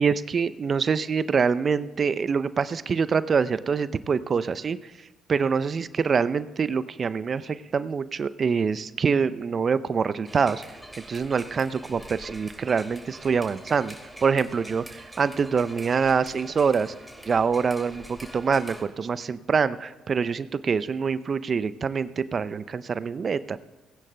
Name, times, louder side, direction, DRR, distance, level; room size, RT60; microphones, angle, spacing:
voice 1, 0.0-4.8 5.3-10.8 11.1-14.0 14.2-16.9 17.3-23.6, right 5 dB, 45° right, 15 dB, 0.5 m, -25 dB
sound 1, 10.3-18.8, right 1 dB, 5° right, 2.4 m, -45 dB
19.5 x 16.5 x 2.2 m, 1.2 s
hypercardioid pair, 45°, 0 cm